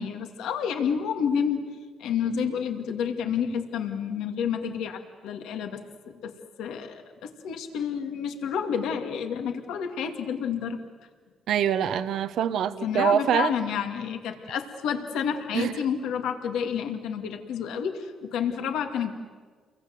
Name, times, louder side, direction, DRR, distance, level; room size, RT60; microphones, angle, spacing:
voice 1, 0.0-1.6 2.0-5.8 6.1-6.3 6.6-10.8 12.8-19.1, left 7 dB, 85° left, 5 dB, 2.3 m, -29 dB
voice 2, 11.5-13.5 15.5-15.7, right 9 dB, 75° right, 11 dB, 1.0 m, -24 dB
29.5 x 23.0 x 7.9 m, 1.5 s
cardioid pair, 90°, 0 cm